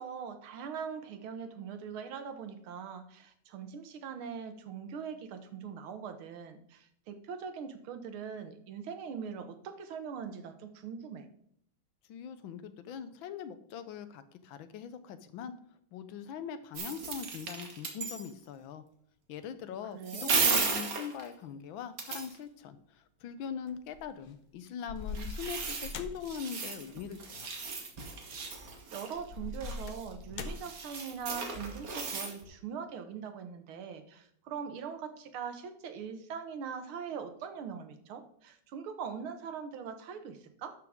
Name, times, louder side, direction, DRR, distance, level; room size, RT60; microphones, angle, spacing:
voice 1, 0.0-11.3 19.9-20.5 28.5-40.7, right 6 dB, 85° right, 8 dB, 1.9 m, -42 dB
voice 2, 12.1-15.5 15.9-18.8 19.3-27.5, left 7 dB, 75° left, 12 dB, 1.5 m, -42 dB
sound 1, 16.7-18.3 20.0-21.3 22.0-22.3 24.9-32.4, right 4 dB, 45° right, 1.7 m, -35 dB
sound 2, 23.7-24.2 24.9-26.4 27.6-27.8 29.1-30.8, left 4 dB, 60° left, 0.9 m, -41 dB
12.0 x 6.4 x 3.6 m, 0.67 s
omnidirectional pair, 2.2 m